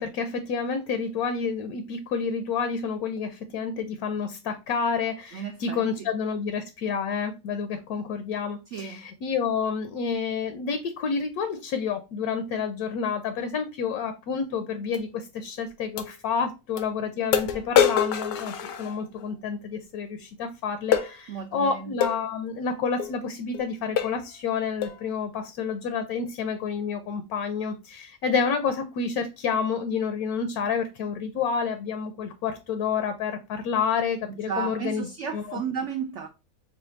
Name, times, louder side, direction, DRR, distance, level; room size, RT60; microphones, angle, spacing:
voice 1, 0.0-35.6, left 6 dB, 70° left, 1.0 m, -29 dB
voice 2, 5.3-6.1 8.7-9.0 21.3-21.9 34.3-36.3, right 6 dB, 85° right, 0.6 m, -33 dB
sound 1, 14.9-15.0 16.0-16.1 16.8-16.9 17.3-19.3 20.9-21.1 22.0-22.2 23.0-23.1 23.5-23.7 24.0-24.3 24.8-25.0, left 9 dB, 85° left, 1.3 m, -25 dB
5.0 x 2.3 x 3.9 m
omnidirectional pair, 1.8 m